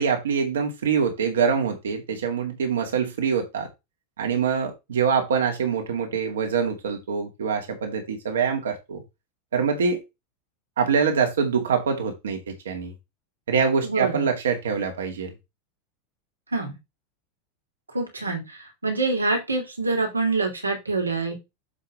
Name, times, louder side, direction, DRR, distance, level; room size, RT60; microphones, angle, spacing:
voice 1, 0.0-3.7 4.2-9.0 9.5-10.0 10.8-12.9 13.5-15.3, right 6 dB, 75° right, 2.4 m, -24 dB
voice 2, 13.8-14.3 16.5-16.8 17.9-21.4, right 3 dB, 90° right, 2.6 m, -26 dB
7.4 x 5.7 x 3.5 m
figure-of-eight pair, 85°, 0 cm